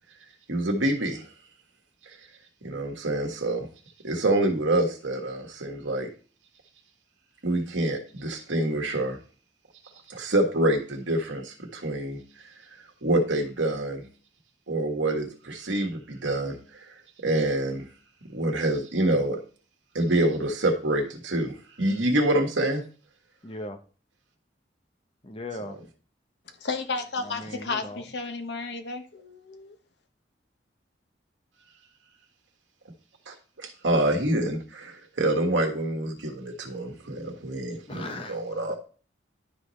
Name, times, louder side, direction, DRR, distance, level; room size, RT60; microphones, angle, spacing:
voice 1, 0.5-1.3 2.1-2.2 2.6-3.7 4.0-6.1 7.4-9.2 10.1-12.5 13.0-14.0 14.7-16.9 17.2-17.8 18.3-19.4 19.9-22.8 33.3-38.7, right 1 dB, 85° right, 1.6 m, -26 dB
voice 2, 23.4-23.8 25.2-25.8 27.2-28.0 37.9-38.4, left 1 dB, 30° left, 0.8 m, -38 dB
voice 3, 26.6-29.7, left 4 dB, 65° left, 1.0 m, -33 dB
11.5 x 4.1 x 3.2 m
head